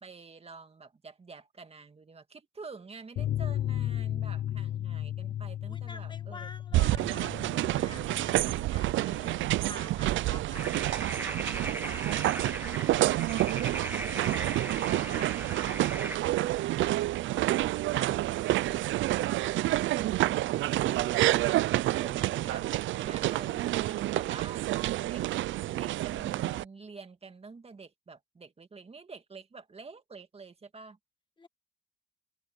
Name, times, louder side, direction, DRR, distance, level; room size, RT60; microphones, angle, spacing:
voice 1, 0.0-6.9 14.9-15.8 21.7-22.7 23.0-25.4 25.7-31.0, right 4 dB, 30° right, 2.3 m, -48 dB
sound 1, 3.2-10.3 10.5-10.6 11.0-11.1, left 12 dB, 60° left, 0.6 m, -35 dB
voice 2, 5.6-11.4 11.8-15.2 16.2-20.0 31.4-31.5, left 3 dB, 25° left, 2.2 m, -51 dB
sound 2, 6.7-26.6, right 15 dB, 75° right, 0.5 m, -28 dB
sound 3, 10.5-16.2, right 2 dB, 10° right, 1.3 m, -38 dB
cardioid pair, 90°, 20 cm